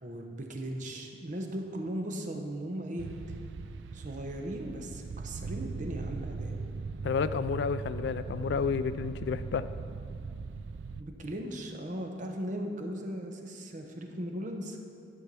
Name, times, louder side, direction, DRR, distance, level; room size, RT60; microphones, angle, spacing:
voice 1, 0.0-3.1 3.9-6.6 11.0-14.8, right 1 dB, 45° right, 3 dB, 0.9 m, -37 dB
sound 1, 3.0-11.0, right 4 dB, 80° right, 0.4 m, -39 dB
voice 2, 7.0-9.7, left 6 dB, 65° left, 13 dB, 0.3 m, -31 dB
11.0 x 4.5 x 6.8 m, 2.5 s
head